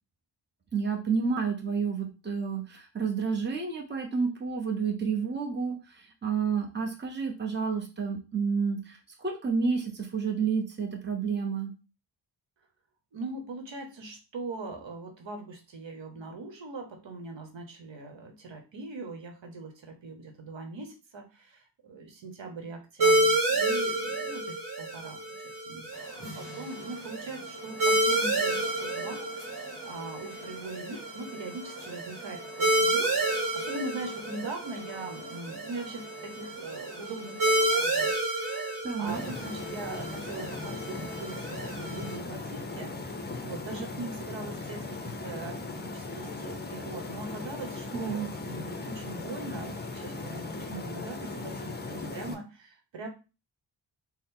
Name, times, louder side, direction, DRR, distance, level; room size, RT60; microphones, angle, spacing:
voice 1, 0.7-11.7 38.8-39.2 47.9-48.3, right 5 dB, 25° right, 2 dB, 0.8 m, -30 dB
voice 2, 13.1-25.2 25.6-53.1, right 3 dB, 75° right, 4 dB, 1.0 m, -41 dB
sound 1, 23.0-42.1, right 2 dB, 45° right, 1.4 m, -30 dB
sound 2, 25.9-38.1, left 1 dB, 10° left, 1.5 m, -49 dB
sound 3, 39.1-52.3, left 3 dB, 25° left, 0.6 m, -38 dB
4.2 x 2.1 x 3.6 m, 0.30 s
wide cardioid pair, 100°, 45 cm